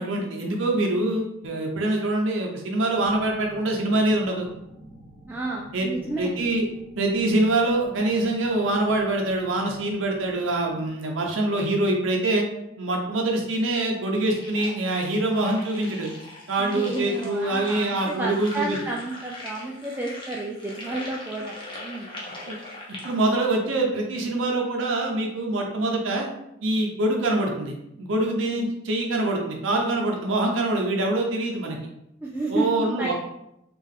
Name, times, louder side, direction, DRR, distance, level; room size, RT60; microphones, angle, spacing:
voice 1, 0.0-4.5 5.7-5.9 6.2-6.6 7.0-12.5 12.8-16.1 16.5-18.8 22.5-22.6 23.0-26.3 26.6-31.8 32.5-33.1, right 2 dB, 70° right, 0 dB, 0.6 m, -24 dB
sound 1, 2.9-10.9, equal, 30° right, 0.9 m, -48 dB
voice 2, 5.3-6.3 16.6-22.2 32.2-32.7 33.0-33.1, right 2 dB, 10° right, -3 dB, 0.3 m, -31 dB
sound 2, 14.1-23.3, left 1 dB, 25° left, 0.8 m, -41 dB
3.6 x 2.4 x 3.6 m, 0.84 s
head